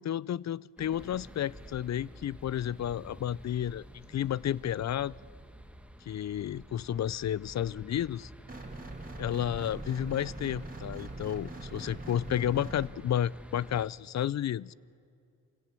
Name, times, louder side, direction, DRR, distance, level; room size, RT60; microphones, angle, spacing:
voice 1, 0.0-5.1 6.1-8.3 9.2-14.7, left 10 dB, 50° left, 0.4 m, -32 dB
sound 1, 0.8-13.9, equal, 5° right, 1.3 m, -51 dB
sound 2, 8.5-12.9, right 2 dB, 25° right, 2.7 m, -42 dB
24.5 x 17.0 x 7.5 m
cardioid pair, 60°, 34 cm